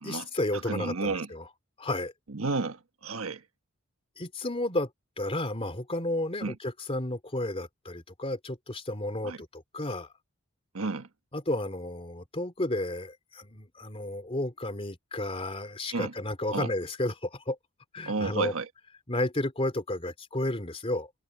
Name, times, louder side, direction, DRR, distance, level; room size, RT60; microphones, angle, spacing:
voice 1, 0.0-1.5 1.8-2.1 4.2-4.9 5.2-10.1 11.3-17.6 17.9-18.5 19.1-21.1, left 1 dB, 30° left, 3.1 m, -32 dB
voice 2, 0.6-1.3 2.3-3.4 6.4-6.6 9.2-9.4 10.7-11.1 15.9-16.1 16.5-16.7 18.1-18.7, right 3 dB, 80° right, 1.4 m, -31 dB
head